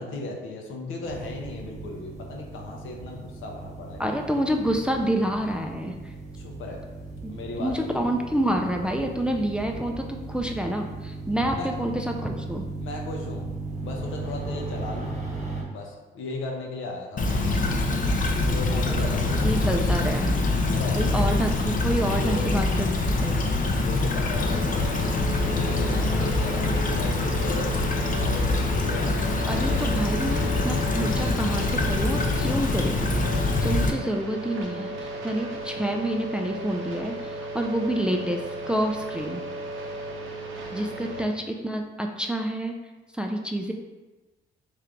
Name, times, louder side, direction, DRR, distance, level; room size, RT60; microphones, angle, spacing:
voice 1, 0.0-4.0 6.3-6.8 7.3-7.7 11.5-11.9 12.8-13.5 13.8-15.2 15.7-17.3 18.4-19.7 20.7-21.3 22.2-22.5 23.8-25.0 25.4-27.8 28.1-29.1 29.4-29.9 41.0-41.2, left 2 dB, 80° left, 1 dB, 0.8 m, -36 dB
sound 1, 1.0-15.6, right 3 dB, 35° right, 0.9 m, -37 dB
voice 2, 4.0-6.0 7.2-7.3 7.6-12.6 19.4-20.3 21.0-23.4 29.5-33.0 33.6-39.4 40.7-42.8 43.1-43.7, right 1 dB, 5° right, 2 dB, 0.4 m, -28 dB
Stream / Trickle dribble, 17.2-33.9, left 2 dB, 45° left, 0.6 m, -24 dB
sound 2, 24.3-41.2, right 1 dB, 90° right, 0.7 m, -36 dB
3.3 x 3.2 x 3.7 m, 1.2 s
cardioid pair, 90°, 20 cm